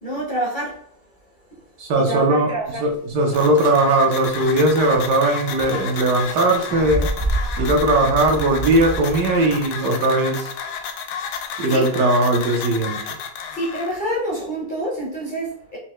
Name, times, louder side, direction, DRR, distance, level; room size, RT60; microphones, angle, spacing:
voice 1, 0.0-0.7 2.1-2.8 11.7-11.9 13.5-15.8, right 1 dB, 35° left, -5 dB, 0.8 m, -26 dB
voice 2, 1.8-7.1 7.6-10.5 11.6-13.0, right 2 dB, 70° right, 1 dB, 1.3 m, -19 dB
sound 1, 2.7-2.8 3.2-9.5, right 2 dB, 20° right, 0.8 m, -29 dB
sound 2, 3.3-14.0, left 6 dB, 75° left, 0.7 m, -32 dB
4.4 x 2.7 x 3.0 m, 0.69 s
omnidirectional pair, 2.0 m